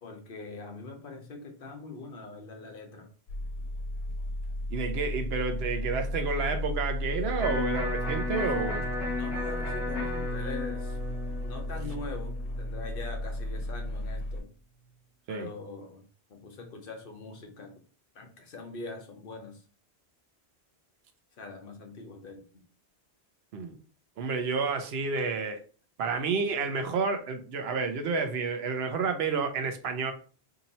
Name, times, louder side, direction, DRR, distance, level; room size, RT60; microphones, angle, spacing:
voice 1, 0.0-3.1 9.2-11.0 11.4-14.5 15.3-17.8 18.1-19.6 21.4-22.5, left 3 dB, 60° left, 4 dB, 0.9 m, -43 dB
sound 1, 3.3-14.4, left 1 dB, 85° left, 0.9 m, -34 dB
voice 2, 4.7-8.9 15.3-15.5 23.5-23.8 24.2-25.6 26.0-30.1, right 4 dB, 75° right, 6 dB, 0.8 m, -30 dB
Electric guitar, 7.4-13.4, left 2 dB, ahead, 1.3 m, -35 dB
2.8 x 2.7 x 4.0 m, 0.40 s
omnidirectional pair, 1.1 m